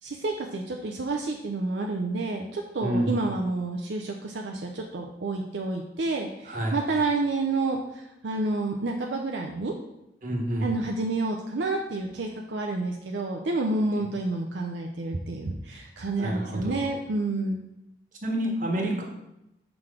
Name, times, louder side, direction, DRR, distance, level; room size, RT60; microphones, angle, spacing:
voice 1, 0.0-9.7 10.6-17.6, right 2 dB, 75° right, 2 dB, 0.6 m, -29 dB
voice 2, 2.8-3.2 6.4-6.8 10.2-10.7 16.2-16.9 18.2-19.0, right 1 dB, 50° right, 1 dB, 1.3 m, -28 dB
6.0 x 3.9 x 5.0 m, 0.85 s
head